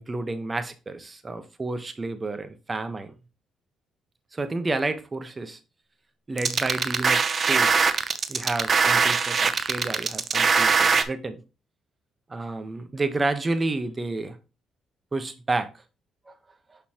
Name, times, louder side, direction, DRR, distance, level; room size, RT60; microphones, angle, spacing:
voice 1, 0.0-3.1 4.3-5.6 6.3-8.0 8.3-11.4 12.3-14.4 15.1-15.7, right 2 dB, 25° right, 1.0 m, -30 dB
sound 1, 6.4-11.0, right 5 dB, 45° right, 0.7 m, -21 dB
6.5 x 5.4 x 2.9 m
cardioid pair, 90°, 0 cm